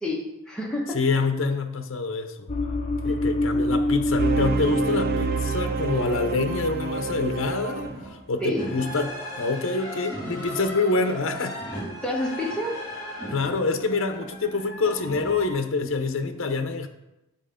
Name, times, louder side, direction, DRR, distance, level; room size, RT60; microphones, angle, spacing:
voice 1, 0.0-1.0 3.0-3.2 8.4-8.7 12.0-12.8, left 1 dB, 5° left, -3 dB, 1.1 m, -29 dB
voice 2, 0.9-2.5 3.0-11.6 13.3-16.9, left 3 dB, 65° left, 7 dB, 0.7 m, -26 dB
sound 1, 2.5-6.0 6.2-6.6, left 1 dB, 30° left, 0.6 m, -26 dB
sound 2, 4.2-8.1, right 4 dB, 45° right, 0.4 m, -28 dB
sound 3, 7.9-15.5, equal, 20° right, 2.9 m, -37 dB
8.0 x 4.3 x 5.0 m, 0.95 s
head